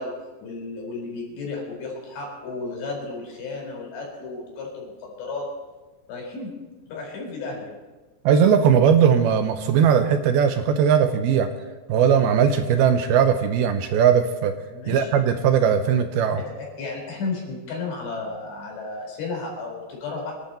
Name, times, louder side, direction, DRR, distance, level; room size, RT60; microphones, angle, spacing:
voice 1, 0.0-5.5 6.1-6.5 6.9-7.8 14.7-15.1 16.6-20.3, left 3 dB, 80° left, -1 dB, 6.6 m, -33 dB
voice 2, 8.3-11.5 11.9-14.5 14.9-16.4, right 7 dB, 80° right, 8 dB, 2.5 m, -19 dB
26.0 x 11.5 x 4.4 m, 1.2 s
omnidirectional pair, 4.9 m